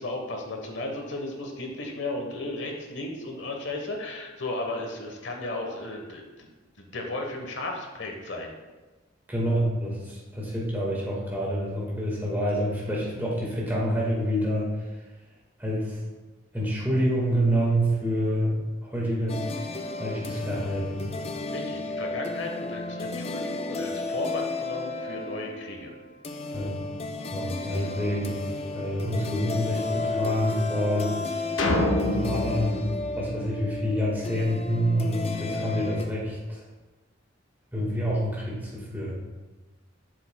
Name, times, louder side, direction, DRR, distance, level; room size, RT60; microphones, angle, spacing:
voice 1, 0.0-6.3 6.8-8.5 21.5-25.9, left 2 dB, 70° left, 2 dB, 1.1 m, -34 dB
voice 2, 9.3-14.7 15.6-16.0 16.5-19.5 20.0-21.0 26.5-26.7 27.3-28.4 28.7-31.1 32.0-32.8 33.2-36.6 37.7-39.1, equal, 10° right, -5 dB, 1.6 m, -27 dB
sound 1, 19.3-36.1, left 3 dB, 30° left, 0.4 m, -33 dB
sound 2, 31.6-34.1, left 1 dB, 85° left, 0.8 m, -27 dB
7.8 x 6.7 x 2.2 m, 1.2 s
head